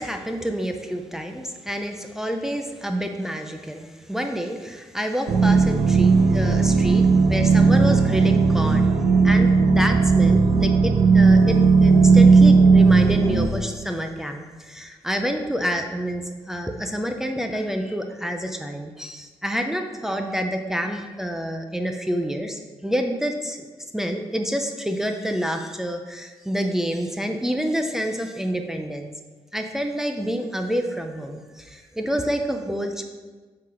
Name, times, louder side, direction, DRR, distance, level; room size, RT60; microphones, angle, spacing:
voice 1, 0.0-9.0 9.2-23.6 23.9-29.1 29.5-33.0, equal, 5° right, 4 dB, 0.5 m, -28 dB
sound 1, 5.3-13.5, right 4 dB, 80° right, 0.8 m, -16 dB
7.6 x 3.9 x 5.7 m, 1.3 s
wide cardioid pair, 165°, 10 cm